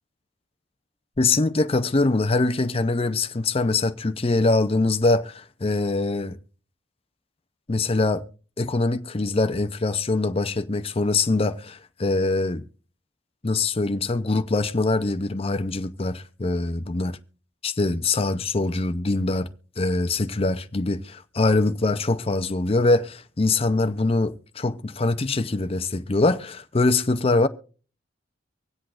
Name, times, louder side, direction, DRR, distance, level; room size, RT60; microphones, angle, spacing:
voice 1, 1.2-6.4 7.7-8.2 8.6-12.6 13.4-17.2 17.6-19.5 19.8-27.5, left 2 dB, 30° left, 0.6 m, -23 dB
24.5 x 8.2 x 2.5 m
head